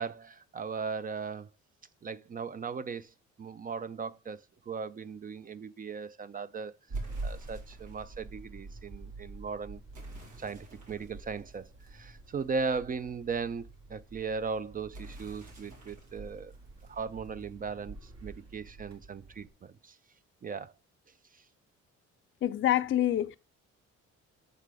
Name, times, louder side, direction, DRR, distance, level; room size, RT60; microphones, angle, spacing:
voice 1, 0.0-1.5 2.0-6.7 7.2-9.8 10.4-16.5 16.8-20.0 20.4-20.7, right 5 dB, 30° right, 0.4 m, -38 dB
sound 1, 6.9-19.5, right 2 dB, 60° right, 1.9 m, -46 dB
sound 2, 6.9-8.2 9.9-12.6 14.9-17.6, right 1 dB, 90° right, 2.2 m, -51 dB
voice 2, 22.4-23.4, left 12 dB, 40° left, 0.4 m, -26 dB
6.6 x 3.7 x 4.7 m
cardioid pair, 90°, 30 cm